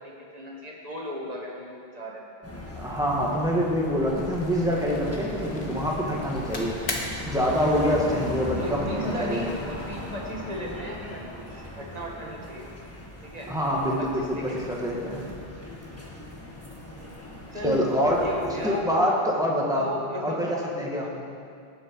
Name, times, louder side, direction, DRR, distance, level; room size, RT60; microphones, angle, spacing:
voice 1, 0.0-2.2 8.4-12.7 13.2-13.5 14.0-14.8 17.5-17.8 18.1-18.8 19.7-20.4, equal, 40° right, -3 dB, 2.0 m, -36 dB
sound 1, 2.4-18.8, left 1 dB, 15° left, 1.5 m, -38 dB
voice 2, 2.8-6.8 7.3-9.5 13.5-15.3 17.6-18.3 18.6-19.9 20.2-21.1, equal, 5° right, -3 dB, 1.7 m, -25 dB
sound 2, 4.1-10.0, left 2 dB, 80° left, 1.5 m, -39 dB
18.5 x 6.3 x 4.7 m, 2.4 s
omnidirectional pair, 1.1 m